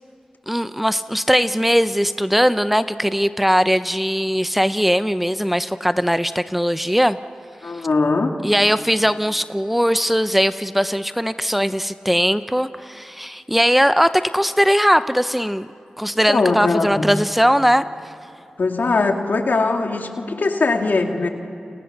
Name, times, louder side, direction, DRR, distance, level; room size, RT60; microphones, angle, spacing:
voice 1, 0.5-7.2 8.4-15.7 16.0-17.8, equal, 5° right, 12 dB, 0.7 m, -19 dB
voice 2, 7.6-8.3 16.3-17.1 18.6-21.3, left 3 dB, 75° left, 4 dB, 2.2 m, -20 dB
29.5 x 27.0 x 6.7 m, 2.6 s
cardioid pair, 40°, 3 cm